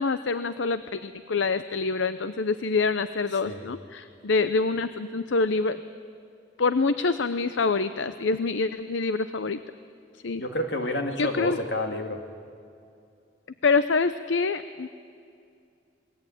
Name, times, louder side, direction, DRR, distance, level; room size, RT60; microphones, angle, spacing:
voice 1, 0.0-5.8 6.6-9.6 10.2-10.4 11.2-11.6 13.6-14.9, left 4 dB, 85° left, 12 dB, 0.7 m, -26 dB
voice 2, 10.4-12.2, left 1 dB, 65° left, 4 dB, 2.5 m, -29 dB
28.0 x 20.0 x 9.2 m, 2.4 s
head